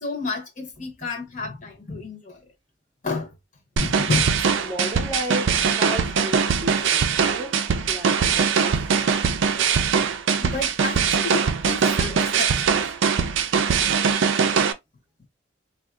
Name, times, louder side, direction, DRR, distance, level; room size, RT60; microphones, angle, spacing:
voice 1, 0.0-2.4 3.0-3.3 3.8-4.4 10.4-12.7, left 4 dB, 40° left, 0.7 m, -30 dB
sound 1, 3.8-14.7, right 6 dB, 75° right, 0.4 m, -21 dB
voice 2, 4.6-7.5 7.9-8.9, right 1 dB, 20° right, 0.5 m, -33 dB
3.6 x 2.3 x 2.3 m
head